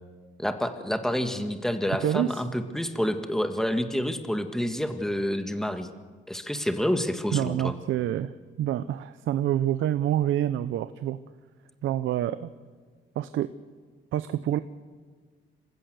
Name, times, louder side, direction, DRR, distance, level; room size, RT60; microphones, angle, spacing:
voice 1, 0.4-5.9 6.3-7.7, equal, ahead, 7 dB, 1.9 m, -28 dB
voice 2, 2.0-2.4 7.3-8.3 8.6-11.2 11.8-12.5 13.2-13.5 14.1-14.6, right 12 dB, 80° right, 13 dB, 0.8 m, -27 dB
27.0 x 15.5 x 8.0 m, 1.5 s
cardioid pair, 90°, 20 cm